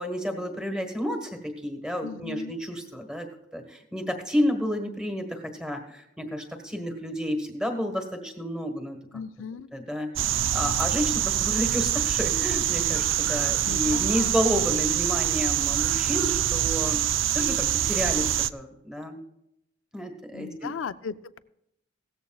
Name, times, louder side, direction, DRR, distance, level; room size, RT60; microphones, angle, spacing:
voice 1, 0.0-3.3 3.5-9.0 9.7-17.0 17.3-19.2 19.9-20.7, equal, 5° right, 4 dB, 1.5 m, -30 dB
voice 2, 2.0-2.6 9.1-9.7 13.6-14.3 20.3-21.4, left 6 dB, 85° left, 14 dB, 0.5 m, -37 dB
sound 1, 10.2-18.5, right 11 dB, 75° right, 0.4 m, -25 dB
17.0 x 13.5 x 2.4 m, 0.79 s
head